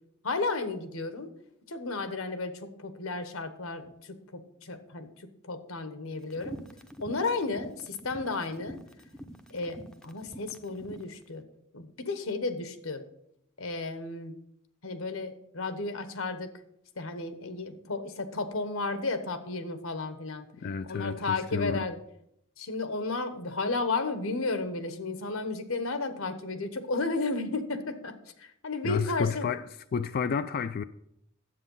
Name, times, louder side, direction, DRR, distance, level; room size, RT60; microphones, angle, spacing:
voice 1, 0.2-1.3 1.7-6.6 7.0-8.8 9.5-11.4 11.7-13.0 13.6-14.4 14.8-16.5 17.0-20.4 20.8-22.0 22.6-29.5, left 3 dB, 85° left, 1.2 m, -33 dB
sound 1, 6.3-11.1, equal, 5° left, 0.6 m, -46 dB
voice 2, 20.6-21.8 28.8-29.6 29.9-30.8, left 6 dB, 45° left, 0.3 m, -30 dB
9.9 x 8.1 x 5.5 m
head